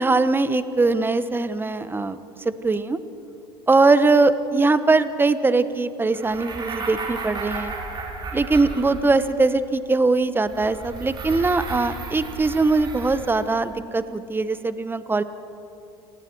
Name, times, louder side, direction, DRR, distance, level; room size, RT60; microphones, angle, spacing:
voice 1, 0.0-2.2 2.6-3.0 3.7-7.7 8.3-15.2, right 3 dB, 15° right, 12 dB, 1.2 m, -21 dB
sound 1, 6.1-9.4 10.5-13.6, right 3 dB, 35° right, 4.4 m, -34 dB
30.0 x 19.0 x 4.7 m, 2.8 s
hypercardioid pair, 80°, 13 cm